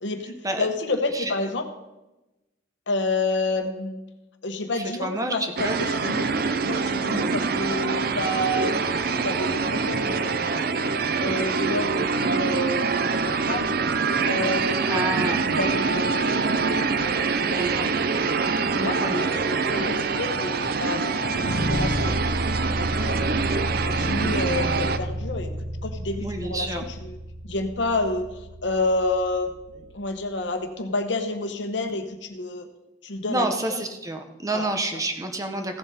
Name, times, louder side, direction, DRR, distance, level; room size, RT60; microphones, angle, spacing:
voice 1, 0.0-1.7 2.9-4.0 4.4-6.3 6.6-10.7 11.2-13.7 14.3-16.4 17.0-17.9 18.5-22.2 22.8-23.4 23.8-27.2 27.4-32.7 33.0-33.8 34.5-34.7, left 2 dB, 70° left, 7 dB, 1.1 m, -29 dB
voice 2, 4.8-5.3 5.6-5.8 14.9-15.4 17.5-17.9 19.0-19.2 26.2-26.8 33.3-35.8, right 2 dB, 20° right, 5 dB, 0.9 m, -29 dB
sound 1, 5.6-25.0, right 4 dB, 50° right, 0.5 m, -25 dB
sound 2, 21.3-30.4, equal, 70° right, 1.2 m, -31 dB
15.5 x 7.4 x 4.2 m, 1.0 s
head